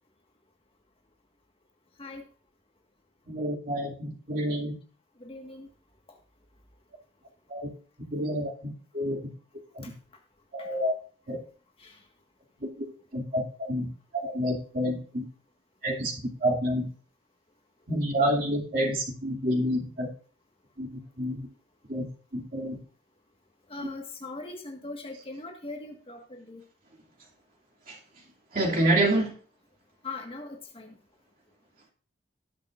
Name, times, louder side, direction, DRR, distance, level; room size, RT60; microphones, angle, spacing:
voice 1, 3.3-4.7 7.5-7.7 8.1-9.2 9.7-9.8 10.5-10.9 11.3-11.4 12.6-12.9 13.1-13.9 14.1-15.3 15.8-16.1 16.4-16.9 17.9-20.1 20.8-21.5 21.9-22.1 22.3-22.8 27.9-28.0 28.5-29.4, right 1 dB, 50° right, 2.7 m, -28 dB
voice 2, 5.2-5.7 9.8-9.9 10.6-10.7 11.8-12.0 23.7-26.6 30.0-30.9, left 3 dB, 30° left, 1.7 m, -40 dB
18.5 x 6.7 x 2.6 m
head